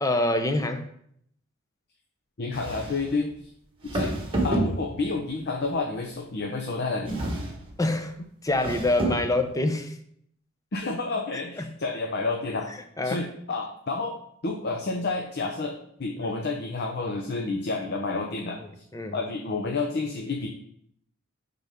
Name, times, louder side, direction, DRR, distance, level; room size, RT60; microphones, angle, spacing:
voice 1, 0.0-0.9 7.8-8.1 8.4-10.0 11.3-11.7 13.0-13.2 16.2-16.4 18.9-19.2, left 2 dB, 15° left, 7 dB, 0.6 m, -26 dB
voice 2, 2.4-3.3 3.9-4.2 4.4-7.2 10.7-12.7 13.0-14.2 14.4-18.8 19.1-20.5, left 3 dB, 55° left, 2 dB, 0.7 m, -30 dB
sound 1, 2.5-3.2 3.9-5.2 7.0-7.8 8.5-9.4, right 1 dB, 25° right, 1.4 m, -29 dB
11.0 x 3.9 x 3.6 m, 0.68 s
head